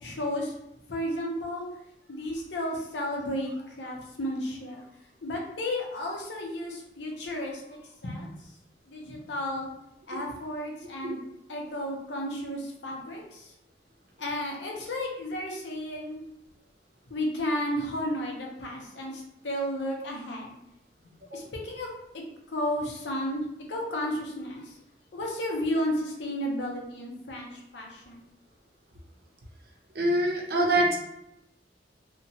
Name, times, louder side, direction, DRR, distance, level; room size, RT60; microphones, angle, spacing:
voice 1, 0.0-0.5 0.9-1.7 2.1-4.8 5.2-8.5 8.9-9.7 10.1-11.2 11.5-13.5 14.2-16.2 17.1-20.5 21.3-21.9 22.5-23.4 23.7-24.7 25.1-28.3 30.0-30.1, left 1 dB, 80° left, 0 dB, 0.6 m, -33 dB
voice 2, 30.0-31.0, right 1 dB, 60° right, 0 dB, 0.6 m, -24 dB
2.8 x 2.2 x 2.7 m, 0.81 s
head